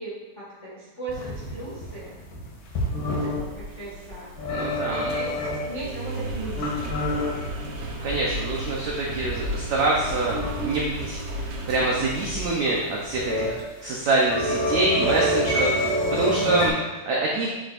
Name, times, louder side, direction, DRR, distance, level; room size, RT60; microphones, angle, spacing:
voice 1, 0.0-2.1 3.0-4.3 4.9-7.0, right 2 dB, 35° left, -8 dB, 1.2 m, -38 dB
sound 1, 1.1-3.4 4.3-5.8 6.2-8.0 8.4-8.5 9.0-10.7 11.1-11.2 11.4-11.5 11.8-12.1 13.0-13.5 13.8-16.7, left 1 dB, 80° left, 4.2 m, -27 dB
Engine, 2.8-13.6, equal, 70° right, 2.7 m, -35 dB
voice 2, 4.5-5.1 8.0-10.3 10.6-13.5 13.8-17.5, right 2 dB, 85° right, -3 dB, 1.5 m, -25 dB
9.0 x 7.5 x 2.6 m, 1.1 s
omnidirectional pair, 4.6 m